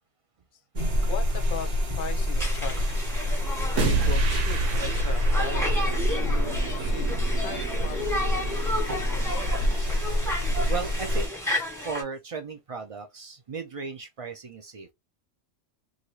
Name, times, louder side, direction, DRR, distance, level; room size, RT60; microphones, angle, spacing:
sound 1, 0.8-11.3, equal, 40° right, 0.8 m, -26 dB
voice 1, 1.1-3.1 3.7-8.3, left 8 dB, 55° left, 0.6 m, -38 dB
sound 2, 1.4-1.7 3.8-9.7, right 6 dB, 75° right, 1.1 m, -32 dB
Conversation, 2.3-12.0, left 1 dB, ahead, 0.9 m, -33 dB
voice 2, 10.7-11.3 11.8-14.9, right 5 dB, 60° right, 0.3 m, -35 dB
2.8 x 2.6 x 3.0 m
omnidirectional pair, 1.3 m